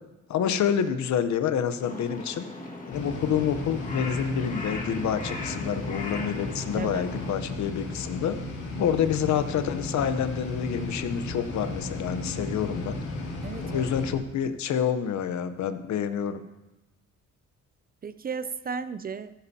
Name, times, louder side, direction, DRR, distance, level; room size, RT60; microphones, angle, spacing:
voice 1, 0.3-2.5 2.9-8.4 8.8-13.0 13.6-16.4, left 8 dB, 65° left, 11 dB, 0.9 m, -28 dB
Crow, 1.8-7.3, left 2 dB, 25° left, 1.8 m, -39 dB
sound 1, 2.9-14.1, left 2 dB, 85° left, 2.3 m, -35 dB
voice 2, 6.7-7.1 13.4-13.9 18.0-19.3, right 6 dB, 30° right, 13 dB, 0.5 m, -34 dB
14.5 x 12.5 x 2.8 m, 1.0 s
cardioid pair, 90°, 30 cm